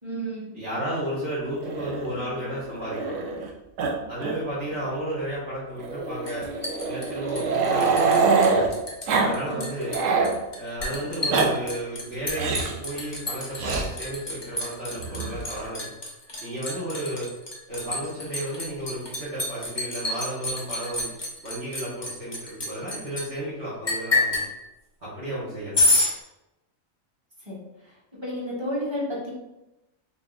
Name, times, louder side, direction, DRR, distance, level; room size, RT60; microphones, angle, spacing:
voice 1, 0.0-0.6 9.5-9.6 27.5-27.6 28.1-29.3, equal, 20° right, -7 dB, 1.2 m, -31 dB
voice 2, 0.5-3.2 4.1-6.4 6.8-8.7 9.2-10.0 10.6-15.9 16.4-17.3 17.7-21.1 21.4-24.4 25.0-25.8, right 1 dB, 55° right, -10 dB, 1.3 m, -33 dB
Growling, 1.6-3.5 3.8-4.4 4.7-4.8 5.8-8.7 9.1-9.3 9.6-10.3 11.1-11.5 12.3-12.8 13.6-13.9 15.0-15.7, right 4 dB, 75° right, 0.9 m, -25 dB
Liquid, 6.3-8.2 8.4-9.1 9.3-23.2 23.9-24.5 25.7-26.1, left 1 dB, 25° left, 0.6 m, -28 dB
4.0 x 3.5 x 2.3 m, 0.96 s
omnidirectional pair, 1.4 m